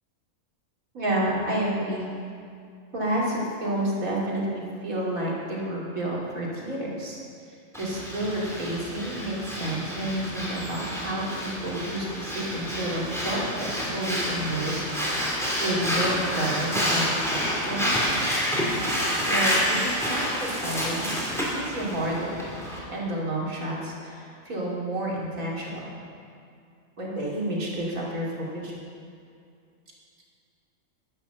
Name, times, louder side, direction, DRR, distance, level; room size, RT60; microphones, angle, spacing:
voice 1, 0.9-2.1 2.9-7.2 7.5-14.8 15.6-18.0 18.9-21.2 21.5-22.3 22.9-25.8 27.0-28.7, right 1 dB, 85° right, -5 dB, 3.3 m, -30 dB
Breathing, 7.7-22.8, equal, ahead, 3.2 m, -28 dB
11.5 x 10.5 x 6.9 m, 2.4 s
omnidirectional pair, 1.4 m